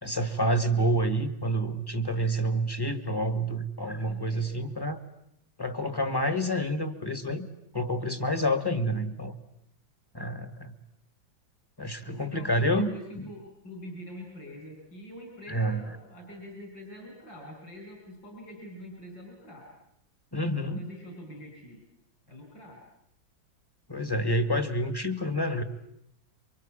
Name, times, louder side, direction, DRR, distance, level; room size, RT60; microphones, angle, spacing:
voice 1, 0.0-5.0 5.6-7.5 7.7-9.3 10.1-10.7 11.8-13.3 15.5-15.8 20.3-20.8 23.9-25.6, right 1 dB, 15° left, 10 dB, 1.4 m, -28 dB
voice 2, 3.9-4.7 12.0-19.7 20.5-21.8 22.3-22.8, equal, 65° left, 2 dB, 6.0 m, -45 dB
28.0 x 24.5 x 8.8 m, 0.75 s
omnidirectional pair, 2.1 m